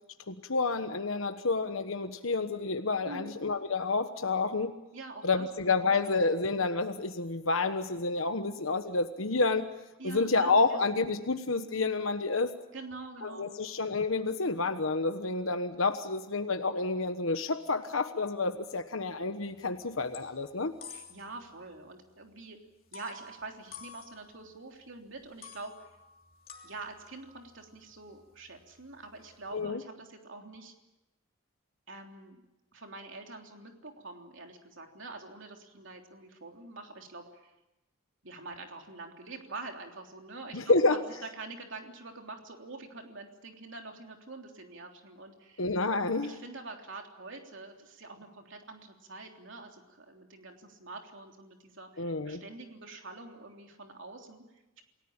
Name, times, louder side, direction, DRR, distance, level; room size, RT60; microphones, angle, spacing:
voice 1, 0.3-4.7 5.2-9.7 10.0-12.5 13.2-20.7 29.5-29.8 40.5-41.0 45.6-46.3 52.0-52.4, left 3 dB, 75° left, 8 dB, 1.2 m, -29 dB
voice 2, 4.9-6.1 10.0-10.8 12.7-13.6 20.9-22.6 22.9-25.9 26.6-30.7 31.9-32.4 32.7-37.5 38.2-45.6 46.2-54.8, right 3 dB, 60° right, 3 dB, 3.4 m, -46 dB
sound 1, 19.4-19.7 20.0-21.5 21.7-21.8 22.9-24.8 25.2-29.6, left 5 dB, 45° left, 3.0 m, -51 dB
28.5 x 17.5 x 8.8 m, 1.0 s
head